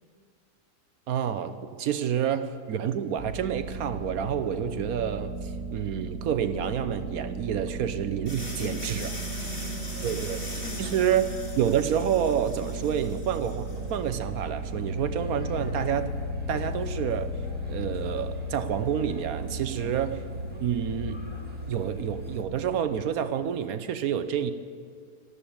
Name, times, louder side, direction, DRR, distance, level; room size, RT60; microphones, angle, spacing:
voice 1, 1.1-9.1 10.0-10.4 10.8-16.1 16.5-17.3 17.7-20.2 20.6-21.2 21.7-24.5, right 9 dB, 65° right, 11 dB, 1.1 m, -28 dB
sound 1, 3.2-22.8, right 1 dB, 50° right, 1.6 m, -35 dB
sound 2, 8.3-14.0, left 1 dB, 35° left, 2.7 m, -41 dB
voice 2, 8.6-11.1 19.8-20.0, left 6 dB, 60° left, 8 dB, 0.8 m, -43 dB
sound 3, 13.6-22.4, right 1 dB, 5° right, 1.9 m, -48 dB
12.5 x 12.0 x 8.6 m, 2.1 s
omnidirectional pair, 1.7 m